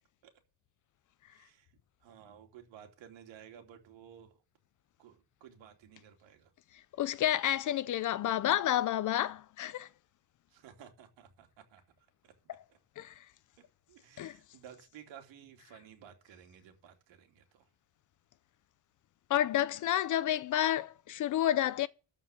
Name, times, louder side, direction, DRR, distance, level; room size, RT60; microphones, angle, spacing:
voice 1, 1.3-4.4 5.0-6.5 10.5-12.3 12.7-12.8 13.6-17.7, right 9 dB, 80° right, 3.0 m, -55 dB
voice 2, 7.0-9.9 13.0-13.2 14.2-14.3 19.3-21.9, left 12 dB, 45° left, 0.5 m, -30 dB
13.5 x 4.9 x 8.2 m
cardioid pair, 175°, 44 cm